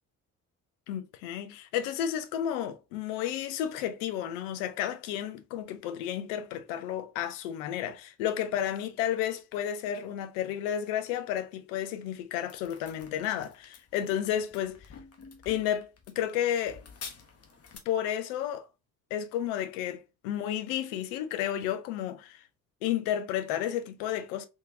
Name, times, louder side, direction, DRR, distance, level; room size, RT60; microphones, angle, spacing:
voice 1, 0.9-14.9 15.5-16.8 17.9-18.7 19.1-22.4 22.8-24.5, left 10 dB, 65° left, 0.6 m, -32 dB
sound 1, 12.5-17.8, left 5 dB, 35° left, 0.9 m, -49 dB
3.5 x 2.8 x 2.6 m
figure-of-eight pair, 45°, 42 cm